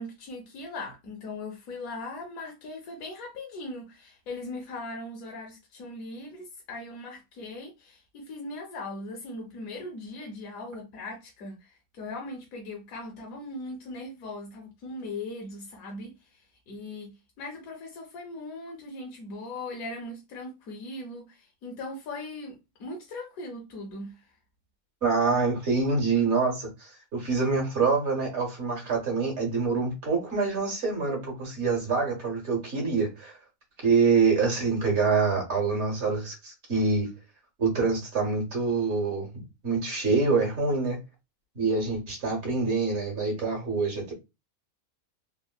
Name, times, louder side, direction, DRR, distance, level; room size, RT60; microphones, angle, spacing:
voice 1, 0.0-24.2, left 2 dB, 80° left, 1.1 m, -39 dB
voice 2, 25.0-33.4 33.8-37.1 37.6-39.3 39.6-41.0 41.5-44.1, right 4 dB, 55° right, 1.4 m, -26 dB
3.5 x 2.1 x 2.2 m
omnidirectional pair, 1.5 m